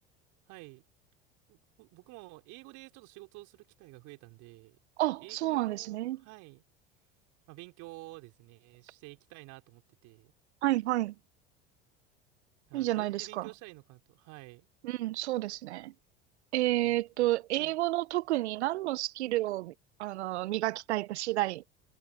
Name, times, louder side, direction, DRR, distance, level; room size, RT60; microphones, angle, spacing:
voice 1, 0.5-0.8 1.5-4.8 5.2-6.6 7.5-10.3 12.7-14.7 16.8-17.3 17.6-17.8, right 23 dB, 60° right, 4.1 m, -50 dB
voice 2, 5.0-6.2 10.6-11.1 12.7-13.5 14.8-15.9 16.5-19.7 20.0-21.6, right 16 dB, 75° right, 0.9 m, -30 dB
hypercardioid pair, 75°, 33 cm